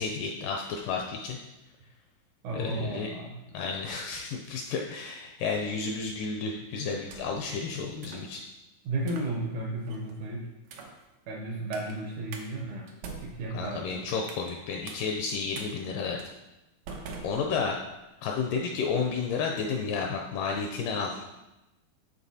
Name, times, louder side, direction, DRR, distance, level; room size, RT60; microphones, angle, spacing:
voice 1, 0.0-1.4 2.5-3.1 3.5-8.4 13.5-16.2 17.2-17.8 18.2-21.2, left 5 dB, 80° left, 1 dB, 1.9 m, -31 dB
voice 2, 2.4-3.4 8.9-10.5 11.3-12.9 13.2-14.1, right 2 dB, 75° right, -1 dB, 1.9 m, -34 dB
sound 1, 6.9-7.5 8.0-8.3 9.0-9.3 9.9-10.2 10.6-11.0 11.7-11.9 12.3-12.5 12.9-14.5 14.9-15.0 15.5-15.7 16.2-16.3 16.9-17.9, right 4 dB, 90° right, 1.6 m, -44 dB
11.0 x 4.1 x 2.7 m, 0.99 s
omnidirectional pair, 4.2 m